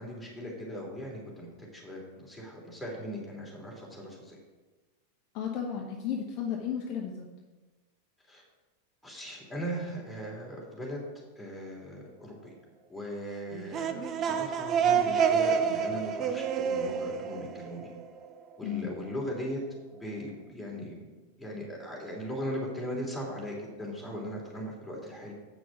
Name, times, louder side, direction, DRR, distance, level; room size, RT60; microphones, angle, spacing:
voice 1, 0.0-4.4 8.3-8.4 9.0-11.0 11.4-12.5 12.9-17.9 18.6-19.6 20.0-21.1 21.4-25.3, equal, 5° left, -4 dB, 3.0 m, -39 dB
voice 2, 5.3-7.3 18.6-18.9, left 8 dB, 40° left, 0 dB, 1.0 m, -33 dB
sound 1, 13.5-18.3, right 7 dB, 30° right, 0.7 m, -28 dB
8.2 x 6.3 x 5.9 m, 1.2 s
figure-of-eight pair, 90°, 0 cm